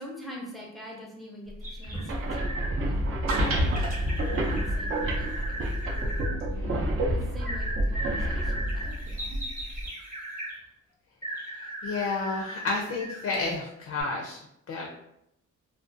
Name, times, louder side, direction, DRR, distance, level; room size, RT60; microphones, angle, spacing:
voice 1, 0.0-2.5 2.8-5.6 7.1-9.4, equal, ahead, -3 dB, 0.5 m, -44 dB
sound 1, 1.6-2.7 3.3-6.3 7.4-10.5 11.2-13.5 13.9-14.0, right 1 dB, 25° right, 0.8 m, -37 dB
sound 2, 1.9-9.9, right 1 dB, 45° right, 0.4 m, -28 dB
voice 2, 11.8-14.4 14.7-14.9, left 3 dB, 55° left, -2 dB, 0.5 m, -31 dB
2.4 x 2.2 x 2.5 m, 0.79 s
wide cardioid pair, 145°, 30 cm